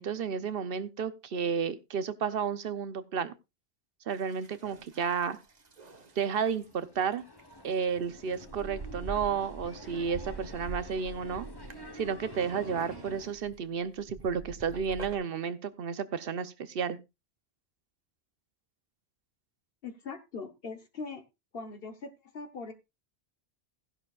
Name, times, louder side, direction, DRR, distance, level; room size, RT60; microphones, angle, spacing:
voice 1, 0.0-3.3 4.1-5.4 6.2-7.2 7.6-11.5 11.9-17.0, right 6 dB, 65° right, 0.9 m, -32 dB
sound 1, 4.1-6.7 7.4-7.5 7.7-15.2, right 4 dB, 40° right, 1.2 m, -45 dB
sound 2, 5.6-13.3, left 1 dB, 25° left, 1.0 m, -50 dB
voice 2, 19.8-21.2 21.5-22.7, left 4 dB, 65° left, 1.3 m, -41 dB
15.5 x 11.0 x 2.4 m
omnidirectional pair, 1.1 m